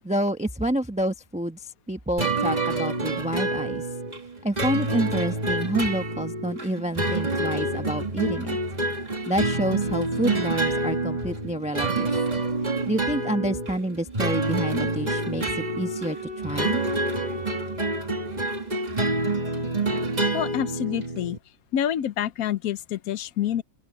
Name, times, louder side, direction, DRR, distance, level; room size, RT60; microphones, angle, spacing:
voice 1, 0.0-3.9 4.4-8.6 9.3-12.1 12.9-16.8, right 1 dB, 5° right, 0.8 m, -28 dB
sound 1, 2.2-21.4, right 2 dB, 25° right, 2.3 m, -27 dB
Wind instrument woodwind instrument, 14.4-19.5, equal, 40° right, 5.6 m, -40 dB
voice 2, 20.3-21.4 21.7-23.6, left 10 dB, 70° left, 1.2 m, -27 dB
open air
omnidirectional pair, 1.6 m